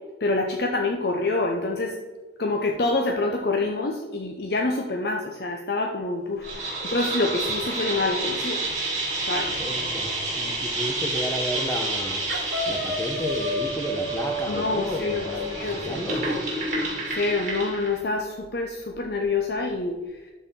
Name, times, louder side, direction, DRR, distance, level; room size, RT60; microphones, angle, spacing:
voice 1, 0.2-2.0 2.4-8.6 9.2-9.5 14.5-15.3 15.5-16.4 17.1-20.3, left 3 dB, 55° left, 0.7 m, -27 dB
sound 1, 6.4-17.9, right 2 dB, 40° right, 2.7 m, -30 dB
voice 2, 9.6-12.3 12.7-16.5, equal, 15° left, 0.8 m, -32 dB
sound 2, 11.1-11.4 11.7-12.0 12.3-16.4, left 1 dB, 60° right, 1.6 m, -32 dB
12.5 x 4.3 x 3.7 m
head